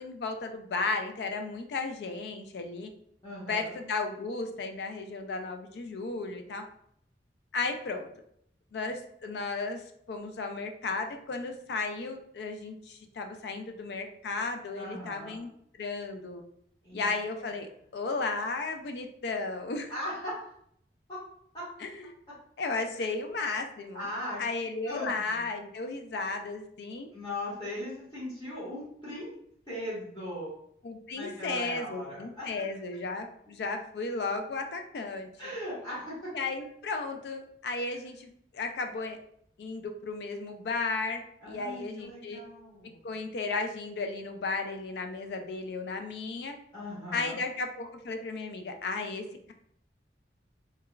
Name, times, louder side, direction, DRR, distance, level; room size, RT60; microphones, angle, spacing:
voice 1, 0.0-2.9 3.5-6.6 7.5-8.1 8.7-15.5 15.8-16.4 16.9-19.9 21.8-22.1 22.6-24.1 24.4-27.1 30.8-35.6 36.3-39.2 39.6-42.4 43.0-46.6 47.1-49.5, left 3 dB, 65° left, 5 dB, 0.3 m, -34 dB
voice 2, 3.2-3.8 14.8-15.4 16.8-17.1 19.9-20.4 21.1-21.2 21.5-21.6 23.9-24.4 24.9-25.4 27.1-29.3 29.7-30.6 31.1-32.5 35.4-36.3 41.4-43.0 46.7-47.5, left 1 dB, 25° left, -9 dB, 1.0 m, -38 dB
2.3 x 2.2 x 3.0 m, 0.69 s
head